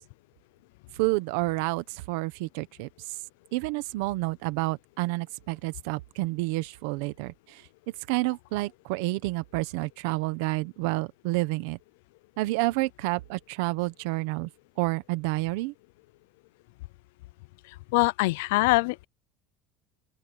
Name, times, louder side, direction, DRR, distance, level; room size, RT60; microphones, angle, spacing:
voice 1, 1.0-2.9 3.5-7.6 8.1-11.8 12.4-14.5 14.8-15.7, right 21 dB, 70° right, 1.1 m, -29 dB
voice 2, 17.9-19.1, left 24 dB, 85° left, 0.4 m, -23 dB
open air
cardioid pair, 175°, 0 cm